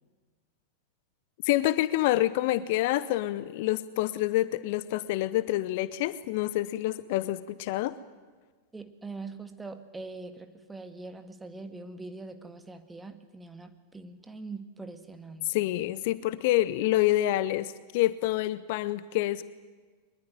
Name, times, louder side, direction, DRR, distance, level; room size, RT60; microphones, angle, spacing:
voice 1, 1.4-7.9 15.5-19.4, left 15 dB, 50° left, 17 dB, 0.8 m, -27 dB
voice 2, 8.7-15.5, right 3 dB, 10° right, 8 dB, 2.0 m, -43 dB
23.0 x 21.5 x 10.0 m, 1.4 s
figure-of-eight pair, 90°, 0 cm